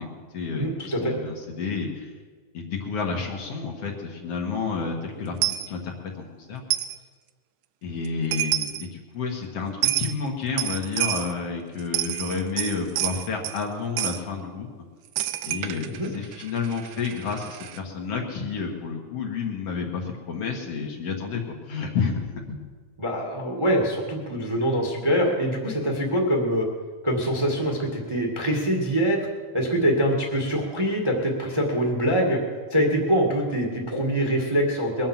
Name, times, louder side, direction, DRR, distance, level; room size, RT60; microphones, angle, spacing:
voice 1, 0.0-2.1 2.5-6.6 7.8-14.7 15.4-22.6, left 5 dB, 60° left, 1 dB, 2.5 m, -30 dB
voice 2, 0.6-1.1 15.8-16.1 23.0-26.6 27.0-29.2 29.5-32.4 32.7-35.1, equal, 10° right, 0 dB, 1.5 m, -24 dB
Coin (dropping), 5.4-5.7 6.7-7.0 8.1-8.2 8.3-8.9 9.8-10.1 10.6-11.3 11.8-13.6 14.0-14.2 15.2-17.8, right 14 dB, 85° right, 2.1 m, -28 dB
21.5 x 7.5 x 7.4 m, 1.5 s
omnidirectional pair, 3.4 m